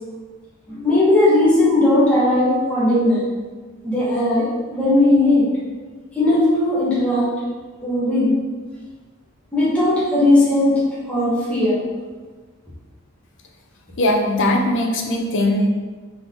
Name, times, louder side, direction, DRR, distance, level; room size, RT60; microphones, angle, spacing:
voice 1, 0.7-3.2 3.8-5.5 6.1-7.3 7.8-8.4 9.5-11.8, left 1 dB, 5° left, -10 dB, 1.3 m, -17 dB
voice 2, 14.0-15.7, left 1 dB, 60° left, 2 dB, 0.6 m, -19 dB
4.0 x 3.5 x 3.7 m, 1.4 s
head